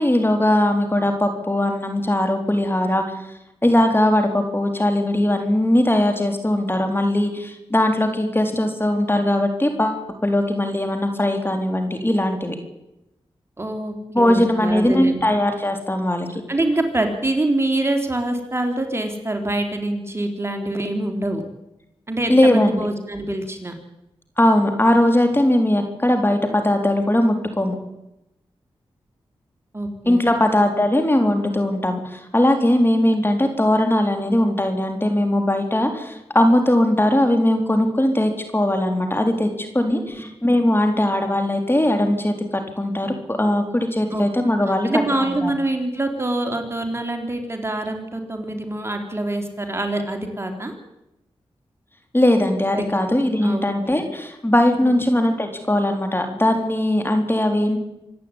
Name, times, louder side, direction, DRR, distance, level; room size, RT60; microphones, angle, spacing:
voice 1, 0.0-3.0 3.6-12.6 14.1-16.4 22.3-22.8 24.4-27.8 30.1-44.9 45.4-45.5 52.1-57.8, left 1 dB, 20° left, 5 dB, 3.9 m, -19 dB
voice 2, 13.6-15.4 16.5-21.4 22.1-23.7 29.7-30.3 39.9-40.2 44.1-44.3 44.8-50.7 52.7-52.9 53.4-54.0 54.8-55.0, right 1 dB, 25° right, 4 dB, 3.9 m, -25 dB
26.0 x 10.5 x 10.0 m, 0.90 s
cardioid pair, 50°, 10 cm